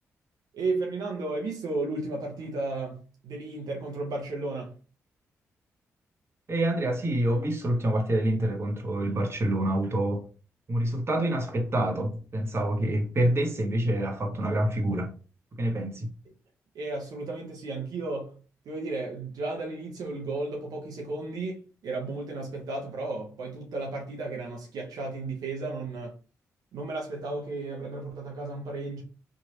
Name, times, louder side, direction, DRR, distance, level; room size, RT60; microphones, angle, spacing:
voice 1, 0.5-4.8 16.7-18.4 18.6-26.1 26.7-29.0, right 3 dB, 70° right, 0.8 m, -34 dB
voice 2, 6.5-10.2 10.7-15.1 15.6-16.1, right 1 dB, 40° right, 1.0 m, -27 dB
3.0 x 2.4 x 2.9 m
supercardioid pair, 45°, 7 cm